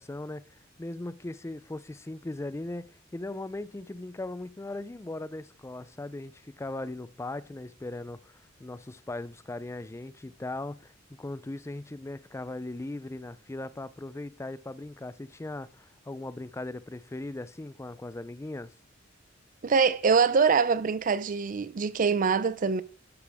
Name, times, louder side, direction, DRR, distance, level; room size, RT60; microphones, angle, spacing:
voice 1, 0.0-18.7, left 2 dB, 15° left, 0.4 m, -39 dB
voice 2, 19.6-22.8, right 5 dB, 45° right, 0.4 m, -24 dB
12.0 x 9.8 x 3.5 m
head